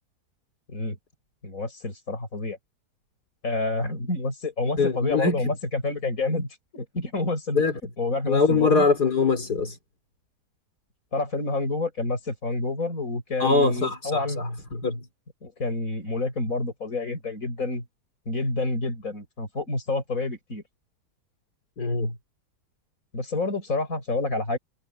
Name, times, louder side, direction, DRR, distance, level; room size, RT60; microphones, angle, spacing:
voice 1, 1.4-2.6 3.4-7.6 8.0-8.9 11.1-14.4 15.4-17.8 18.3-20.6 23.1-24.6, left 2 dB, 55° left, 6.5 m, -28 dB
voice 2, 4.8-5.5 7.5-7.7 8.2-9.8 13.4-15.1 21.8-22.1, left 4 dB, 75° left, 4.2 m, -23 dB
omnidirectional pair, 1.7 m